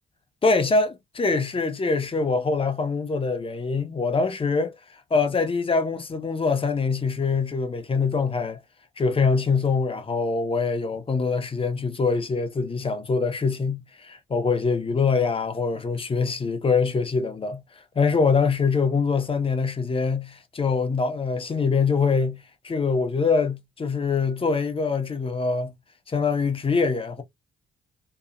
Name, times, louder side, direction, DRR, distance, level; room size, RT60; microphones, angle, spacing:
voice 1, 0.4-0.9 1.1-8.6 9.0-25.7 26.1-27.2, left 4 dB, 25° left, 0.7 m, -24 dB
2.8 x 2.3 x 2.4 m
cardioid pair, 90°, 20 cm